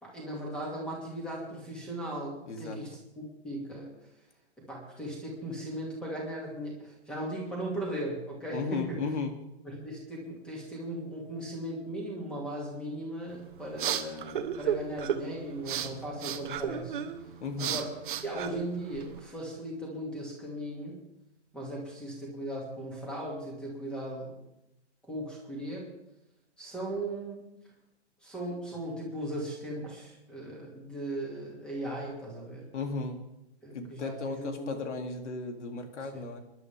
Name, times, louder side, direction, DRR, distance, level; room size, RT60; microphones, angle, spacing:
voice 1, 0.0-3.9 4.6-9.1 9.6-17.0 17.6-17.9 18.2-21.0 21.5-24.4 25.0-25.9 26.6-27.5 28.2-32.7 33.6-34.7 36.1-36.2, right 1 dB, 5° left, -2 dB, 2.4 m, -38 dB
voice 2, 2.5-2.8 8.5-9.3 17.4-17.8 32.7-33.2 33.7-36.4, left 4 dB, 80° left, 4 dB, 2.9 m, -35 dB
sound 1, 13.3-19.2, right 9 dB, 45° right, 1.2 m, -35 dB
28.0 x 11.0 x 3.6 m, 0.88 s
hypercardioid pair, 175°, 34 cm